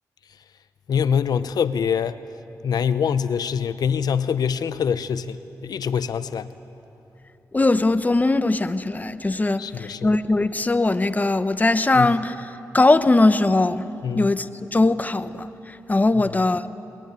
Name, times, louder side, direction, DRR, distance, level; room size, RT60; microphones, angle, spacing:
voice 1, 0.9-2.2 2.6-6.5 9.6-10.1 11.9-12.1 14.0-14.3, left 7 dB, 80° left, 0.7 m, -24 dB
voice 2, 7.5-12.5 12.7-13.8 14.1-16.7, left 2 dB, 25° left, 0.9 m, -20 dB
22.0 x 19.5 x 9.5 m
cardioid pair, 65°, 7 cm